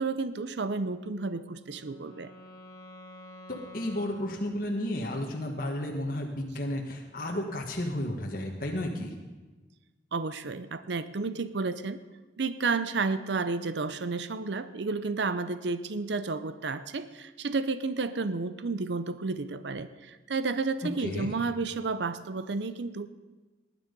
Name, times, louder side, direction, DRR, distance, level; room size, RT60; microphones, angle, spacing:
voice 1, 0.0-2.3 10.1-12.0 12.4-23.1, right 4 dB, 75° right, 12 dB, 0.6 m, -31 dB
Wind instrument woodwind instrument, 1.2-5.1, left 1 dB, 20° left, 2.2 m, -50 dB
voice 2, 3.5-9.1 20.8-21.3, left 1 dB, 50° left, 0 dB, 1.4 m, -32 dB
19.0 x 10.0 x 5.3 m, 1.3 s
head